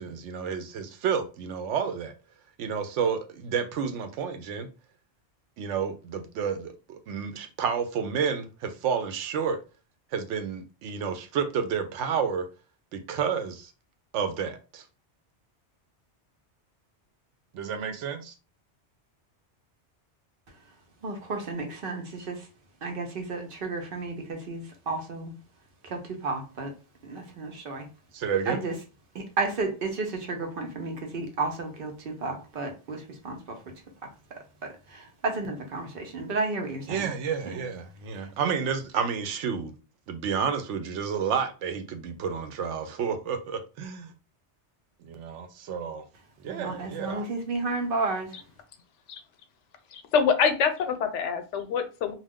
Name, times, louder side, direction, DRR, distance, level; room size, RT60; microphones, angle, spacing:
voice 1, 0.0-2.1 2.6-4.7 5.6-9.6 10.1-12.4 12.9-13.7 14.1-14.8 17.5-18.3 28.1-28.6 36.9-39.7 40.1-44.1 45.0-46.0 46.4-47.3, right 6 dB, 85° right, 0.9 m, -30 dB
voice 2, 21.0-22.5 22.8-25.3 25.8-26.7 27.0-27.9 28.5-28.7 29.1-33.6 34.6-37.1 37.5-37.7 38.1-38.3 46.5-48.4, right 3 dB, 60° right, 0.8 m, -32 dB
voice 3, 49.9-52.1, left 6 dB, 85° left, 0.9 m, -25 dB
2.4 x 2.2 x 3.5 m
omnidirectional pair, 1.2 m